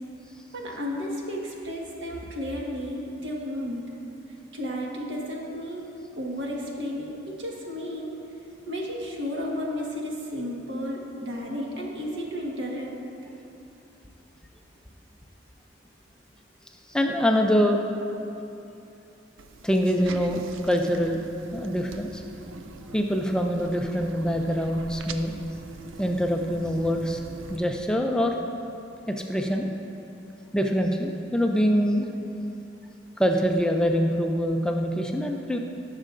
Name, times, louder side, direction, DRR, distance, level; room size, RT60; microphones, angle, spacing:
voice 1, 0.5-3.8 4.5-5.8 6.2-8.1 8.6-12.9, equal, 65° right, -2 dB, 1.5 m, -33 dB
voice 2, 16.9-17.8 19.6-21.3 21.5-22.2 22.9-25.3 26.0-27.2 27.5-28.3 29.1-29.7 30.5-32.1 33.2-35.6, equal, 5° left, 2 dB, 0.4 m, -24 dB
sound 1, 19.4-27.6, right 3 dB, 85° right, 0.5 m, -42 dB
18.5 x 6.4 x 2.5 m, 2.8 s
head